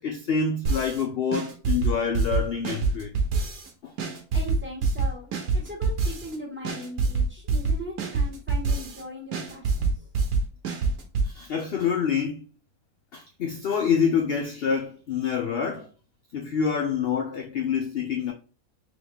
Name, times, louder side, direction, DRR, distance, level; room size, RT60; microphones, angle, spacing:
voice 1, 0.0-3.1 3.8-3.9 11.2-12.4 13.1-15.9 16.3-18.3, left 6 dB, 60° left, 0.6 m, -27 dB
sound 1, 0.7-1.0 1.3-3.7 4.0-6.4 6.7-9.0 9.3-11.3, right 4 dB, 75° right, 1.4 m, -25 dB
voice 2, 4.3-5.3 5.5-9.9, equal, 10° right, 1.5 m, -39 dB
3.8 x 3.1 x 3.5 m
omnidirectional pair, 1.6 m